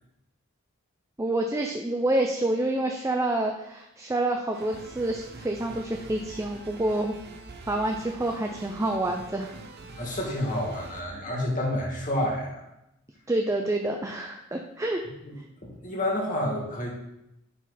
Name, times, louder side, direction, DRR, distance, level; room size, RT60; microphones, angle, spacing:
voice 1, 1.2-7.1 7.7-9.5 13.3-15.0, right 1 dB, 15° right, 2 dB, 0.5 m, -28 dB
sound 1, 4.5-11.0, right 3 dB, 45° right, 0.8 m, -45 dB
voice 2, 10.0-12.6 15.2-15.3 15.6-16.9, left 1 dB, 35° left, -2 dB, 2.1 m, -29 dB
10.5 x 4.0 x 4.2 m, 0.88 s
head